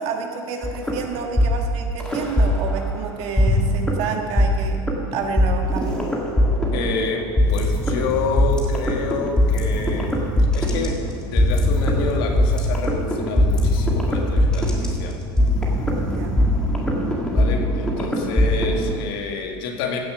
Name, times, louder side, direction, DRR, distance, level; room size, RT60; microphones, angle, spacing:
voice 1, 0.0-4.8 5.1-6.1 16.0-16.4, right 5 dB, 50° right, 3 dB, 1.7 m, -29 dB
sound 1, 0.6-3.0 3.4-19.0, left 1 dB, 5° left, 1.6 m, -21 dB
voice 2, 6.7-15.2 17.2-20.0, left 4 dB, 65° left, 2 dB, 2.0 m, -28 dB
15.5 x 7.2 x 6.4 m, 2.4 s
supercardioid pair, 145°, 13 cm